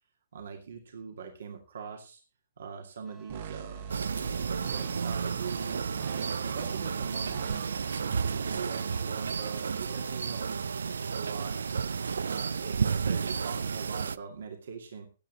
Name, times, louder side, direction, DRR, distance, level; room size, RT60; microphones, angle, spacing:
voice 1, 0.3-2.2 2.6-5.9 6.4-7.7 8.0-11.6 12.2-15.1, right 6 dB, 75° right, 4 dB, 2.4 m, -42 dB
sound 1, 3.0-10.6, right 4 dB, 10° right, 1.2 m, -56 dB
sound 2, 3.3-8.6, right 8 dB, 55° right, 1.2 m, -42 dB
sound 3, 3.9-14.2, right 5 dB, 90° right, 0.5 m, -32 dB
15.0 x 9.2 x 4.0 m, 0.34 s
hypercardioid pair, 150°, 0 cm